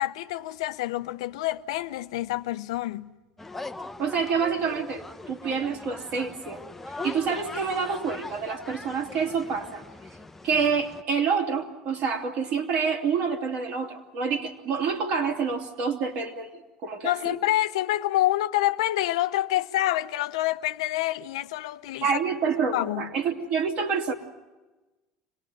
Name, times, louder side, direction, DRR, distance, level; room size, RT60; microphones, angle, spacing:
voice 1, 0.0-3.1 17.0-22.1 22.7-23.1, left 15 dB, 85° left, 0.7 m, -27 dB
sound 1, 3.4-11.0, left 3 dB, 10° left, 1.0 m, -40 dB
voice 2, 4.0-5.0 5.3-6.6 7.0-9.8 10.4-16.5 16.8-17.3 22.0-24.1, right 5 dB, 60° right, 3.0 m, -27 dB
25.5 x 18.5 x 9.4 m
supercardioid pair, 100°, 3 cm